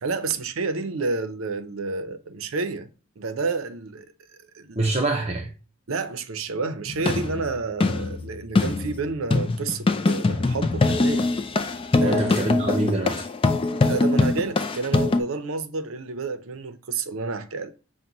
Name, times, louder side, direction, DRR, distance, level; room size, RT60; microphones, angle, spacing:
voice 1, 0.0-2.9 3.2-4.1 4.5-4.8 5.9-11.3 12.0-12.2 13.8-17.7, right 4 dB, 75° right, 0.6 m, -30 dB
voice 2, 4.8-5.5 12.0-13.3, right 2 dB, 30° right, 0.5 m, -25 dB
sound 1, 6.9-15.2, left 3 dB, 25° left, 0.4 m, -23 dB
5.9 x 2.2 x 3.8 m
head